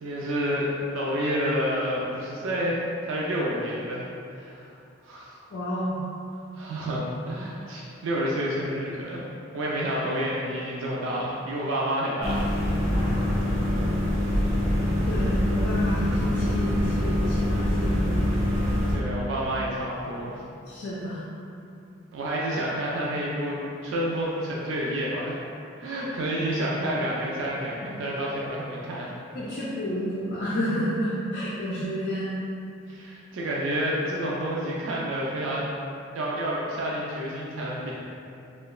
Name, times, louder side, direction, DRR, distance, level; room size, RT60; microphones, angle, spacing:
voice 1, 0.0-4.1 4.3-4.6 5.0-5.4 6.5-9.2 9.5-12.8 18.9-20.4 22.1-25.4 25.8-29.1 32.9-35.7 36.1-38.0, equal, 85° right, -5 dB, 0.3 m, -29 dB
voice 2, 5.5-6.0 15.0-18.2 20.7-21.2 27.9-28.0 29.3-32.3, equal, 55° left, -7 dB, 0.3 m, -30 dB
sound 1, 12.2-19.0, left 1 dB, 40° right, 0.7 m, -24 dB
2.9 x 2.2 x 2.3 m, 2.6 s
head